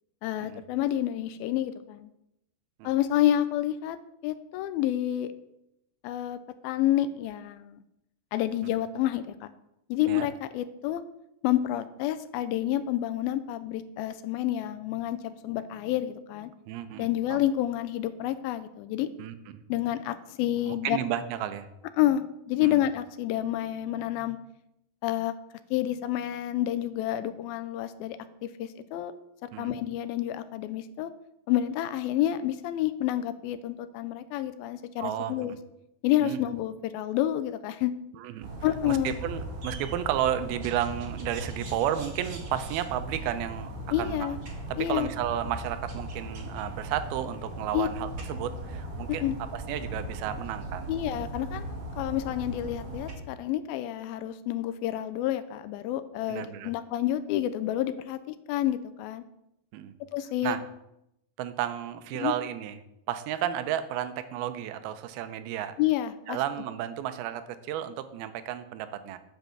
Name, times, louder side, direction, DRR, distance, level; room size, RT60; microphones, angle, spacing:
voice 1, 0.2-2.1 2.8-4.0 4.2-5.3 6.0-7.8 8.3-9.5 9.9-11.0 11.4-16.5 17.0-19.1 19.7-21.0 22.0-24.4 25.0-25.3 25.7-29.1 29.4-31.1 31.5-35.6 36.0-37.9 38.6-39.2 43.9-44.4 44.8-45.1 47.7-47.9 49.2-49.4 50.9-59.2 60.1-60.6 62.1-62.3 65.8-66.4, left 12 dB, 80° left, 13 dB, 2.3 m, -29 dB
voice 2, 16.7-17.1 19.2-19.3 20.6-21.7 22.6-22.8 29.5-29.8 35.0-35.6 36.2-36.4 38.2-38.5 38.9-43.7 44.0-44.4 44.7-49.2 49.5-50.9 56.3-56.7 59.7-59.9 60.4-60.6 61.4-62.8 63.1-65.7 66.3-69.2, right 11 dB, 90° right, 11 dB, 2.6 m, -32 dB
sound 1, 38.4-53.1, right 1 dB, 45° right, 2.0 m, -38 dB
8.0 x 7.2 x 6.7 m, 0.83 s
omnidirectional pair, 4.4 m